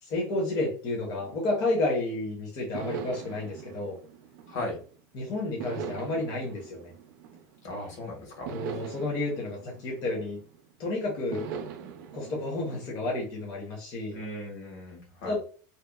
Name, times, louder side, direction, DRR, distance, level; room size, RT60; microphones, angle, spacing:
voice 1, 0.0-4.0 5.1-6.9 8.5-10.4 10.8-11.5 12.1-14.2 15.3-15.4, left 2 dB, 35° left, -2 dB, 0.6 m, -31 dB
sound 1, 1.0-2.1 2.7-5.0 5.6-7.9 8.5-10.7 11.3-13.5, right 7 dB, 85° right, 0.4 m, -42 dB
voice 2, 4.5-4.8 7.6-8.5 14.1-15.4, left 1 dB, 70° left, 0 dB, 1.3 m, -37 dB
2.8 x 2.0 x 2.2 m, 0.40 s
cardioid pair, 175°, 10 cm